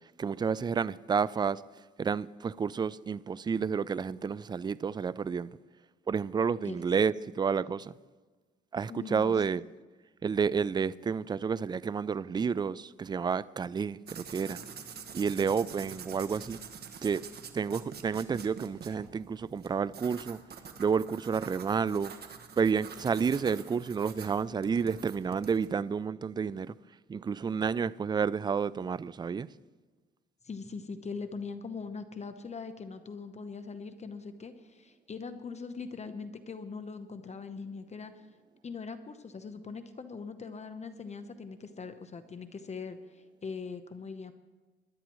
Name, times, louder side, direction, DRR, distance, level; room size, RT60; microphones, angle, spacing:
voice 1, 0.2-1.6 2.0-5.5 6.1-7.9 8.7-9.6 10.2-14.6 15.1-16.6 17.0-17.2 17.5-20.4 20.8-22.1 22.6-26.7 27.1-29.5, right 6 dB, 20° right, 0.3 m, -30 dB
voice 2, 8.9-9.4 30.4-38.2 38.6-44.3, left 5 dB, 35° left, 0.9 m, -41 dB
sound 1, 14.1-25.7, right 6 dB, 55° right, 1.5 m, -47 dB
21.0 x 11.5 x 3.1 m
cardioid pair, 90°, 20 cm